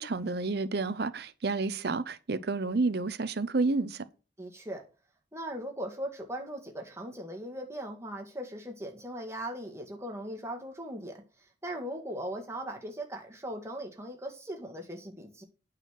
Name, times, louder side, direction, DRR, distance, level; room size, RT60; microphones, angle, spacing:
voice 1, 0.0-4.0, right 3 dB, 60° right, 0.6 m, -30 dB
voice 2, 4.4-4.8 5.3-11.2 11.6-15.4, right 1 dB, 15° right, 1.7 m, -39 dB
9.0 x 4.1 x 6.5 m
head